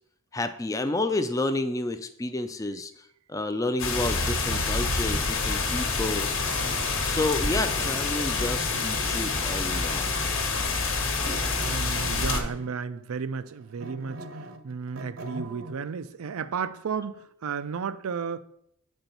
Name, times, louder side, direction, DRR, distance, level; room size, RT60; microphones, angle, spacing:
voice 1, 0.3-3.0 3.3-6.3 7.0-10.1, left 2 dB, 15° left, 0.3 m, -30 dB
sound 1, 3.8-12.4, left 4 dB, 60° left, 1.1 m, -27 dB
sound 2, 4.6-7.5 7.7-10.4 11.3-12.9 13.3-15.8, right 1 dB, 60° right, 0.8 m, -43 dB
voice 2, 11.6-14.2 14.6-18.4, right 6 dB, 80° right, 0.4 m, -33 dB
7.9 x 4.4 x 5.2 m
head